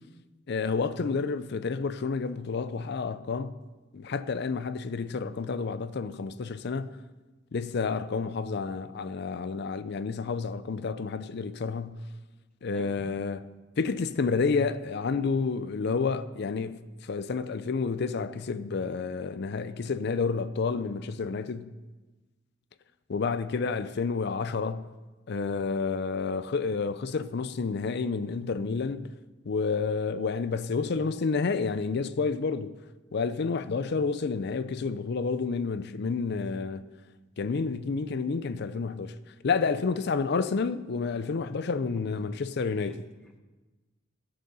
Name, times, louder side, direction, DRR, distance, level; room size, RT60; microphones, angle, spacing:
voice 1, 0.5-3.5 3.9-6.9 7.5-12.0 12.6-13.4 13.8-21.7 23.1-24.9 25.3-29.1 29.5-32.7 33.1-36.8 37.4-39.1 39.4-43.0, left 4 dB, 55° left, 0.5 m, -30 dB
voice 2, 12.7-13.2 41.9-42.3 42.8-43.4, equal, 5° left, 1.1 m, -50 dB
13.0 x 6.7 x 5.4 m
head